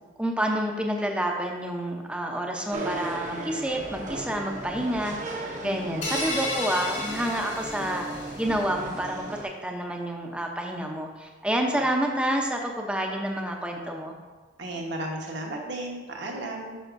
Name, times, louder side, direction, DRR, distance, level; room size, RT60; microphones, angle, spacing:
voice 1, 0.2-8.1 8.4-14.1, right 1 dB, 5° right, 1 dB, 0.7 m, -29 dB
sound 1, 2.7-9.4, right 2 dB, 40° right, 0.8 m, -36 dB
voice 2, 5.6-6.1 14.6-16.7, right 1 dB, 65° right, 0 dB, 1.2 m, -34 dB
sound 2, 6.0-8.5, left 1 dB, 75° left, 2.2 m, -33 dB
9.8 x 5.9 x 2.6 m, 1.3 s
head